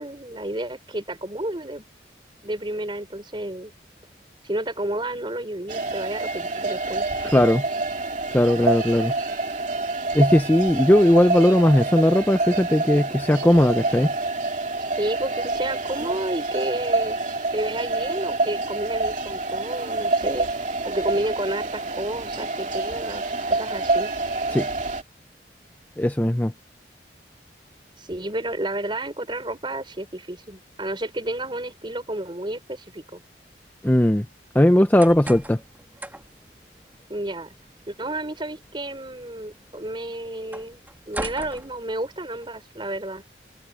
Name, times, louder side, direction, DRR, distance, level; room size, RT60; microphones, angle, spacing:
voice 1, 0.0-1.8 2.4-3.7 4.4-7.4 15.0-17.2 17.5-20.5 20.8-24.1 28.0-33.2 37.1-37.5 37.9-40.8 41.1-43.2, right 1 dB, 30° right, 4.7 m, -31 dB
sound 1, 5.7-25.0, right 3 dB, 45° right, 2.7 m, -27 dB
voice 2, 7.2-7.6 8.3-9.1 10.1-14.1 24.5-24.7 26.0-26.5 33.8-34.3 34.5-35.6, left 1 dB, 10° left, 0.6 m, -18 dB
sound 2, 34.7-42.5, right 1 dB, 10° right, 1.9 m, -41 dB
head